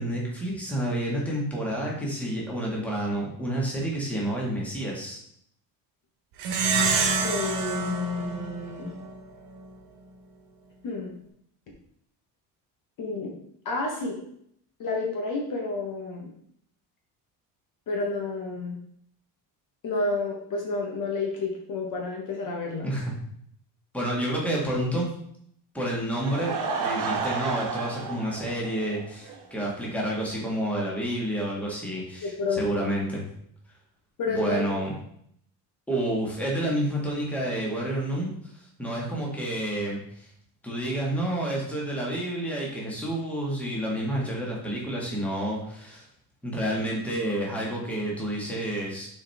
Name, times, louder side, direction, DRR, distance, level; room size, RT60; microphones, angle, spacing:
voice 1, 0.0-5.2 22.8-23.1 23.9-25.1 25.7-33.3 34.3-34.9 35.9-40.3 40.6-46.0 46.4-49.1, right 1 dB, 5° left, -3 dB, 1.7 m, -29 dB
Plucked string instrument, 6.4-9.2, right 4 dB, 70° right, 1.3 m, -27 dB
voice 2, 7.2-8.9 10.8-11.1 13.0-13.3 13.6-14.2 14.8-16.3 17.9-18.8 19.8-22.9 32.2-32.6 34.2-34.8, left 3 dB, 50° left, 0 dB, 1.3 m, -30 dB
Laughter / Crowd, 25.9-29.4 29.7-29.8 30.3-30.4 30.6-30.7, right 5 dB, 50° right, 1.4 m, -32 dB
6.3 x 4.5 x 3.5 m, 0.68 s
cardioid pair, 140°, 41 cm